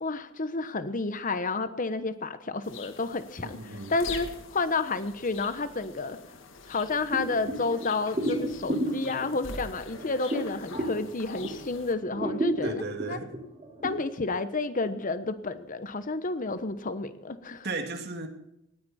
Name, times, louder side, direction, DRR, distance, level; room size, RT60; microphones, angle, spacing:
voice 1, 0.0-6.2 6.7-12.8 13.1-13.2 13.8-17.7, left 3 dB, 45° left, 1.0 m, -30 dB
sound 1, 2.6-11.9, left 4 dB, 75° left, 1.9 m, -44 dB
voice 2, 3.4-3.9 12.6-13.4 17.6-18.3, right 3 dB, 55° right, 2.3 m, -35 dB
sound 2, 7.1-11.7 12.1-13.9, right 1 dB, 30° right, 4.5 m, -33 dB
18.5 x 14.0 x 4.3 m
head